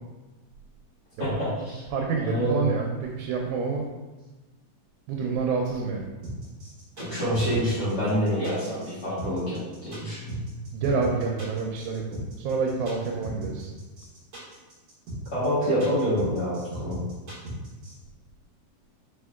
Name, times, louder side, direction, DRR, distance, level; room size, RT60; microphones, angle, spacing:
voice 1, 1.2-1.8 2.2-2.6 7.0-10.4 15.3-17.0, equal, 45° left, -11 dB, 1.6 m, -27 dB
voice 2, 1.9-3.8 5.1-6.1 10.7-13.7, right 4 dB, 90° right, 0 dB, 2.0 m, -28 dB
sound 1, 6.2-17.9, right 1 dB, 50° right, 2.3 m, -37 dB
4.7 x 4.3 x 2.3 m, 1.2 s
omnidirectional pair, 3.4 m